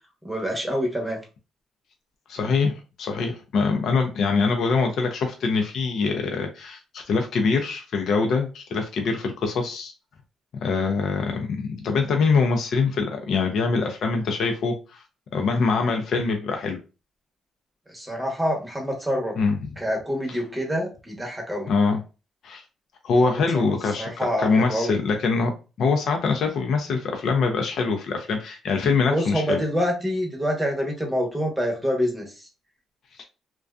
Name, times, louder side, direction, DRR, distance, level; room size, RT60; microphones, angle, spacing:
voice 1, 0.2-1.2 17.9-19.4 19.8-21.7 23.2-25.0 29.1-32.4, equal, 10° right, 1 dB, 0.8 m, -27 dB
voice 2, 2.3-9.9 10.6-15.0 15.3-16.8 19.4-19.6 21.7-22.0 22.4-22.6 23.0-25.5 25.8-29.6, left 4 dB, 65° left, 4 dB, 0.5 m, -24 dB
2.5 x 2.2 x 2.3 m, 0.31 s
cardioid pair, 90°, 0 cm